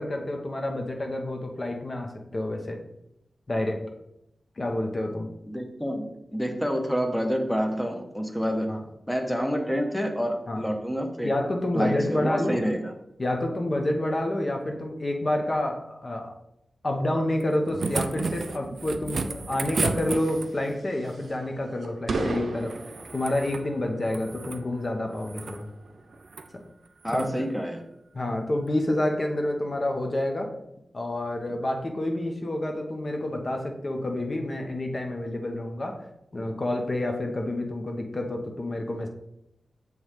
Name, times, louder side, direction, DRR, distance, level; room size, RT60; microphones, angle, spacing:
voice 1, 0.0-2.8 3.5-3.8 4.6-5.3 8.7-8.8 10.5-10.6 11.2-12.6 13.2-16.3 16.8-22.8 23.1-25.7 27.1-27.5 28.1-30.5 30.9-36.0 36.3-39.1, left 1 dB, 35° left, 3 dB, 0.9 m, -28 dB
voice 2, 5.5-8.8 9.1-11.3 11.7-12.9 27.0-27.8, equal, 5° left, 4 dB, 0.8 m, -28 dB
sound 1, 17.4-20.7 22.6-23.7 24.0-24.6 25.2-25.6 26.2-26.5 27.0-27.3 28.7-28.8, right 4 dB, 55° right, 0.4 m, -33 dB
sound 2, 20.0-26.7, right 2 dB, 80° right, 0.9 m, -38 dB
7.1 x 3.1 x 5.0 m, 0.83 s
wide cardioid pair, 115°, 0 cm